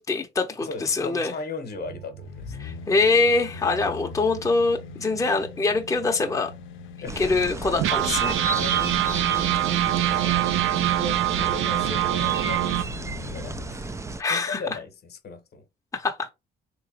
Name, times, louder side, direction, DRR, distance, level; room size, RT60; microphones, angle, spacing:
voice 1, 0.0-1.3 2.6-6.5 7.2-8.4 14.2-14.6 15.9-16.3, left 3 dB, 15° left, 0.7 m, -24 dB
voice 2, 0.6-2.8 7.0-7.3 8.3-13.9 14.3-15.6, left 4 dB, 55° left, 0.9 m, -38 dB
sound 1, 1.7-4.9 5.4-5.5 5.7-6.0 6.6-6.7 7.8-12.8, right 13 dB, 75° right, 0.4 m, -25 dB
sound 2, 2.2-13.8 14.2-14.3, left 6 dB, 85° left, 0.5 m, -41 dB
sound 3, 7.1-14.2, right 3 dB, 15° right, 0.3 m, -33 dB
3.4 x 3.0 x 2.8 m
cardioid pair, 90°, 20 cm